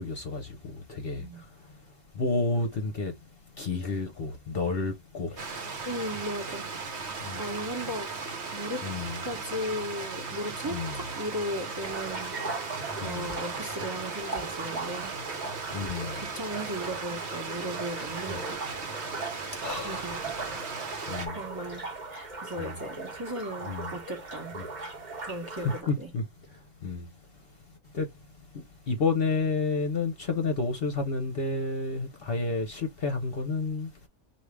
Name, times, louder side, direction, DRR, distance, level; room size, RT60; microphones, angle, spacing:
voice 1, 0.0-5.9 7.2-7.4 8.8-9.2 10.6-11.0 12.9-13.3 15.7-16.2 18.3-18.4 19.5-20.3 21.1-21.4 22.6-22.8 23.7-23.9 24.5-24.7 25.6-26.2 26.5-27.6 27.9-28.1 28.5-34.1, left 3 dB, 50° left, 0.9 m, -31 dB
Stream, 5.4-21.3, right 4 dB, 55° right, 1.2 m, -37 dB
voice 2, 5.8-6.9 7.4-8.9 9.2-15.2 16.2-18.7 19.8-20.2 21.3-21.8 22.1-24.6 25.2-26.1, equal, 15° right, 1.0 m, -37 dB
sound 1, 11.8-25.8, right 3 dB, 35° right, 1.2 m, -39 dB
4.8 x 2.7 x 3.2 m
omnidirectional pair, 1.4 m